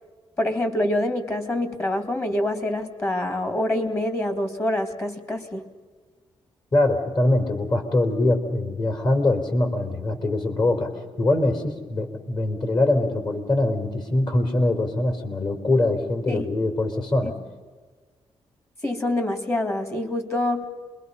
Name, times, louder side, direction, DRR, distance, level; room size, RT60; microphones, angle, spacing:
voice 1, 0.4-5.7 16.3-16.5 17.2-17.3 18.8-20.6, left 1 dB, 25° left, 8 dB, 2.4 m, -26 dB
voice 2, 6.7-10.9 11.2-17.3, left 2 dB, 40° left, 5 dB, 3.9 m, -23 dB
28.5 x 22.0 x 5.6 m, 1.4 s
cardioid pair, 120°, 11 cm